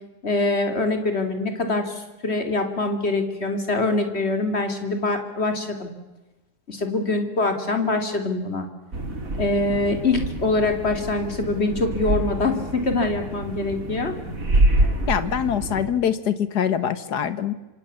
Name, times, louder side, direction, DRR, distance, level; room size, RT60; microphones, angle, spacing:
voice 1, 0.2-5.9 6.7-8.7 9.4-14.1, left 2 dB, 40° left, 6 dB, 3.3 m, -24 dB
sound 1, 8.9-15.9, right 1 dB, 55° right, 3.5 m, -26 dB
voice 2, 15.1-17.5, left 8 dB, 75° left, 13 dB, 1.9 m, -24 dB
26.5 x 26.0 x 7.1 m, 1.1 s
omnidirectional pair, 1.8 m